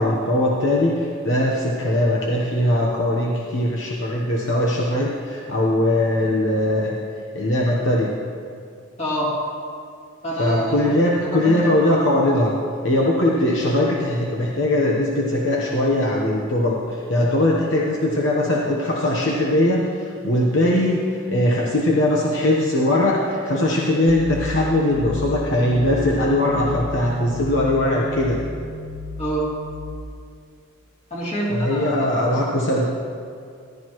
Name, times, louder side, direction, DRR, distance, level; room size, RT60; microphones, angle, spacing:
voice 1, 0.0-6.9 7.3-8.1 10.4-12.6 12.8-28.4 31.5-32.8, left 1 dB, 65° left, -2 dB, 1.1 m, -20 dB
voice 2, 9.0-9.3 10.2-11.8 29.2-29.5 31.1-32.1, right 1 dB, 35° left, -7 dB, 3.0 m, -27 dB
sound 1, 24.1-30.0, left 2 dB, 80° left, 0.8 m, -32 dB
15.0 x 12.0 x 3.1 m, 2.3 s
head